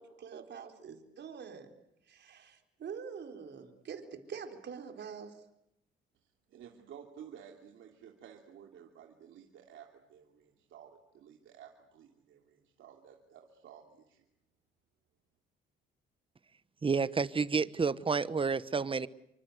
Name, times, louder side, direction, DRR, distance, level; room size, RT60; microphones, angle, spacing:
voice 1, 0.0-1.7 2.0-5.4, right 6 dB, 60° right, 5 dB, 4.0 m, -45 dB
voice 2, 6.5-14.2, right 8 dB, 75° right, 2 dB, 3.0 m, -54 dB
voice 3, 16.8-19.1, right 5 dB, 25° right, 16 dB, 1.1 m, -30 dB
28.0 x 25.0 x 8.1 m, 0.80 s
cardioid pair, 90°, 20 cm